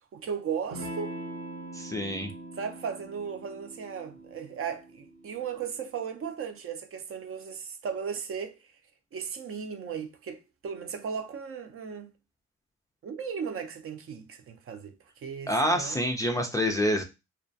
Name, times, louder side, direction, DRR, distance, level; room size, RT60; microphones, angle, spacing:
voice 1, 0.1-1.1 2.6-8.6 9.1-12.1 13.0-16.0, right 7 dB, 45° right, 0.5 m, -36 dB
Electric guitar / Strum, 0.7-5.8, right 1 dB, 70° right, 1.0 m, -42 dB
voice 2, 1.7-2.3 15.5-17.0, equal, 10° left, 0.3 m, -27 dB
2.3 x 2.2 x 2.6 m
cardioid pair, 90°, 30 cm